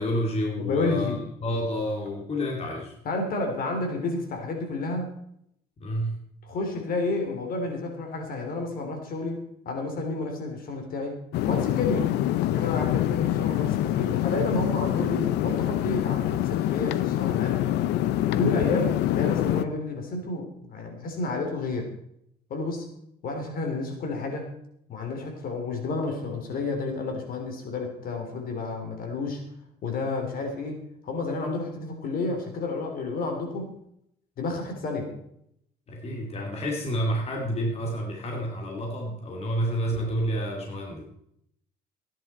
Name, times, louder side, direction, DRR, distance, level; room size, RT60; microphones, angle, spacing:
voice 1, 0.0-2.9 5.8-6.2 35.9-41.0, equal, 35° left, 0 dB, 2.7 m, -29 dB
voice 2, 0.6-1.2 3.1-5.1 6.5-11.2 11.4-12.1 12.5-17.6 18.3-21.9 22.5-22.9 23.2-24.5 24.9-29.4 29.8-33.8 34.4-35.1, left 3 dB, 60° left, 3 dB, 3.4 m, -30 dB
sound 1, 11.3-19.6, left 13 dB, 85° left, 0.7 m, -25 dB
15.5 x 10.5 x 4.4 m, 0.74 s
cardioid pair, 110°, 17 cm